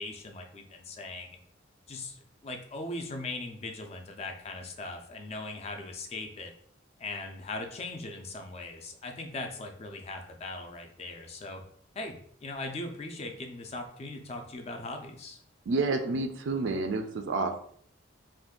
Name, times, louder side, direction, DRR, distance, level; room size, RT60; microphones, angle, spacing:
voice 1, 0.0-1.4 1.9-6.5 7.0-11.6 12.0-15.4, left 2 dB, 30° left, 4 dB, 0.3 m, -39 dB
voice 2, 15.7-17.6, right 3 dB, 70° right, 7 dB, 0.4 m, -29 dB
2.5 x 2.3 x 3.5 m, 0.62 s
head